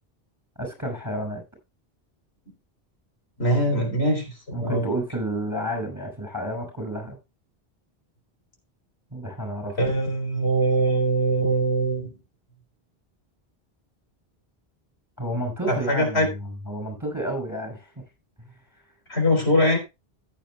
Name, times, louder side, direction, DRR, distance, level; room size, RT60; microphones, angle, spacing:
voice 1, 0.6-1.4 4.5-7.2 9.1-9.8 15.2-17.9 18.4-18.6, right 1 dB, 15° right, 6.2 m, -30 dB
voice 2, 3.4-4.9 9.8-12.1 15.7-16.3 19.1-19.8, right 1 dB, 90° left, 4.4 m, -22 dB
15.5 x 10.0 x 2.3 m
omnidirectional pair, 1.1 m